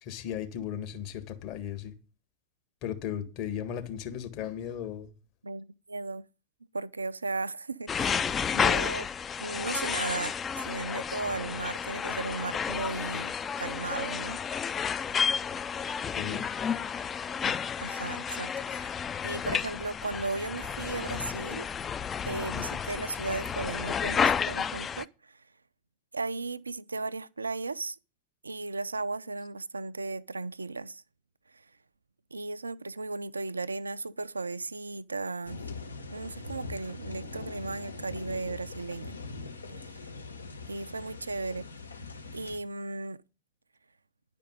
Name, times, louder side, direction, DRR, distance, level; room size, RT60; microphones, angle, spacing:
voice 1, 0.0-1.9 2.8-5.1 16.2-16.4, left 9 dB, 45° left, 1.7 m, -36 dB
voice 2, 5.4-6.3 6.7-9.1 9.4-14.4 17.4-19.0 19.2-21.7 22.2-25.4 26.1-28.0 28.4-31.0 31.5-31.6 32.3-35.6 36.1-39.2 39.8-40.0 40.7-41.7 42.3-43.2, right 3 dB, 80° right, 0.4 m, -36 dB
sound 1, 7.9-25.0, left 7 dB, 20° left, 0.4 m, -31 dB
sound 2, 35.4-42.6, left 3 dB, 75° left, 1.2 m, -42 dB
11.0 x 5.1 x 8.0 m
figure-of-eight pair, 90°, 0 cm